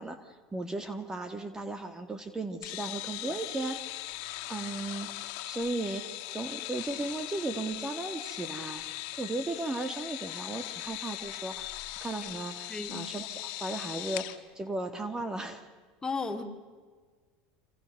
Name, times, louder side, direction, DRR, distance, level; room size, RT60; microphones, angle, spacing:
voice 1, 0.0-4.2 4.5-8.8 9.2-15.7, right 2 dB, 15° right, 9 dB, 2.0 m, -36 dB
sound 1, 2.6-14.4, left 16 dB, 65° left, 2.0 m, -39 dB
voice 2, 12.7-13.0 16.0-16.4, left 4 dB, 20° left, 4 dB, 2.9 m, -34 dB
28.0 x 26.0 x 6.7 m, 1.5 s
supercardioid pair, 110°, 4 cm